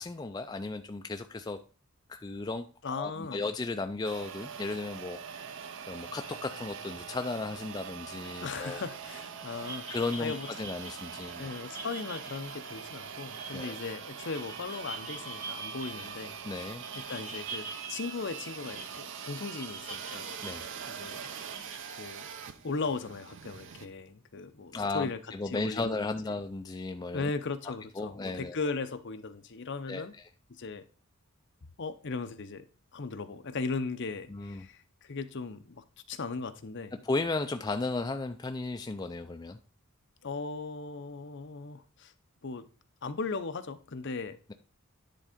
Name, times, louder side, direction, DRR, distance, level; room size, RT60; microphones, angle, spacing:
voice 1, 0.0-1.6 2.1-5.2 5.8-8.8 9.9-11.5 13.5-13.8 16.5-16.8 20.4-20.7 24.7-27.3 27.7-28.6 29.9-30.3 34.3-34.7 37.0-39.6, left 3 dB, 20° left, 6 dB, 0.4 m, -35 dB
voice 2, 2.8-3.4 8.4-9.8 10.2-10.5 11.4-16.4 17.0-20.3 20.9-21.3 22.0-22.3 22.6-25.2 25.5-26.3 27.1-30.1 30.6-30.8 31.8-32.6 32.9-37.0 40.2-42.1 42.4-42.7 43.0-44.4, left 4 dB, 55° left, 9 dB, 0.7 m, -37 dB
sound 1, 4.0-23.9, right 7 dB, 60° right, 0.6 m, -43 dB
sound 2, 9.6-21.8, right 3 dB, 35° right, 1.9 m, -45 dB
10.0 x 3.7 x 5.0 m, 0.35 s
head